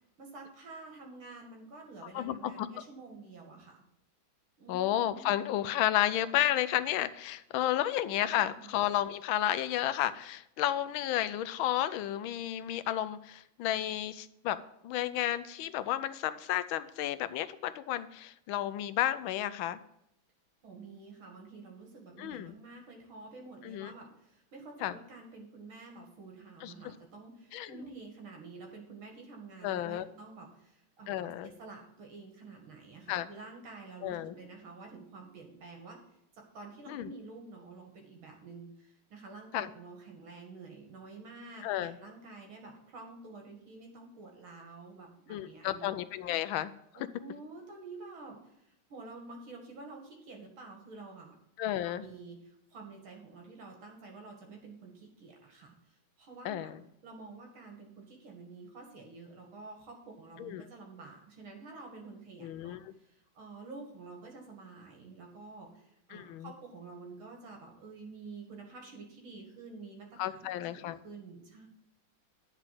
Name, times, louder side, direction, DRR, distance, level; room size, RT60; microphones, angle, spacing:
voice 1, 0.2-3.8 4.6-5.3 7.7-8.7 20.6-36.0 36.3-45.9 46.9-51.3 51.7-56.7 57.0-70.5 70.7-71.7, right 3 dB, 80° right, 1 dB, 2.8 m, -49 dB
voice 2, 2.1-2.7 4.7-14.6 14.8-19.8 22.2-22.5 23.6-23.9 24.8-25.0 26.6-26.7 27.5-27.7 29.6-30.0 31.1-31.5 33.1-33.3 34.0-34.3 36.9-37.1 39.5-39.7 41.6-42.0 45.3-46.7 51.6-52.1 56.4-56.8 60.4-60.6 62.4-62.9 66.1-66.5 70.2-71.0, left 12 dB, 85° left, 13 dB, 1.4 m, -32 dB
9.8 x 5.0 x 7.5 m, 0.79 s
omnidirectional pair, 2.2 m